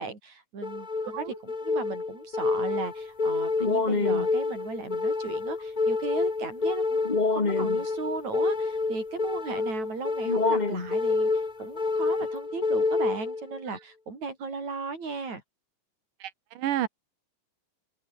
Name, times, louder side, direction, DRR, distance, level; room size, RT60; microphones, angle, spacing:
voice 1, 0.0-15.4, right 4 dB, 60° right, 6.9 m, -36 dB
sound 1, 0.6-13.6, left 3 dB, 85° left, 0.4 m, -27 dB
voice 2, 16.2-16.9, right 12 dB, 90° right, 3.0 m, -31 dB
open air
omnidirectional pair, 3.6 m